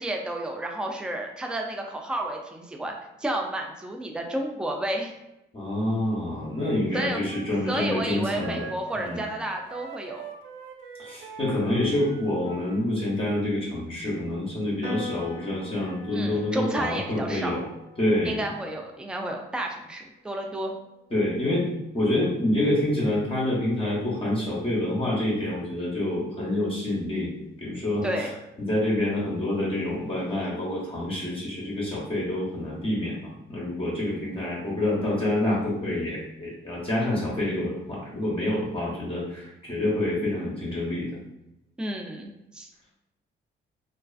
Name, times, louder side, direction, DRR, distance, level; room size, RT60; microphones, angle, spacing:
voice 1, 0.0-2.9 3.2-5.1 6.9-7.2 7.7-10.2 16.1-17.6 18.2-20.7 28.0-28.3 41.8-42.7, right 1 dB, 5° right, 2 dB, 0.3 m, -31 dB
voice 2, 5.5-8.7 9.0-9.2 11.0-17.6 18.0-18.4 21.1-21.7 21.9-27.3 27.6-28.1 28.6-41.1, left 1 dB, 25° left, -6 dB, 0.7 m, -27 dB
Wind instrument woodwind instrument, 6.5-12.8, right 5 dB, 75° right, 0.4 m, -43 dB
Piano, 14.8-21.5, left 2 dB, 35° right, 0.8 m, -44 dB
2.4 x 2.3 x 2.3 m, 0.90 s
cardioid pair, 90°, 20 cm